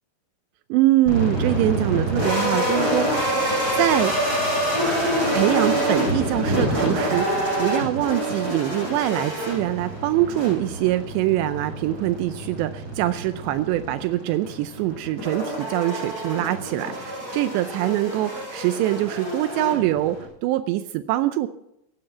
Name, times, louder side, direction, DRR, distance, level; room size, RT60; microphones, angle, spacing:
voice 1, 0.7-4.3 5.3-21.5, right 14 dB, 90° right, 10 dB, 2.4 m, -24 dB
sound 1, 1.1-20.3, equal, 20° right, 6.6 m, -26 dB
16.5 x 10.0 x 5.8 m, 0.80 s
omnidirectional pair, 5.7 m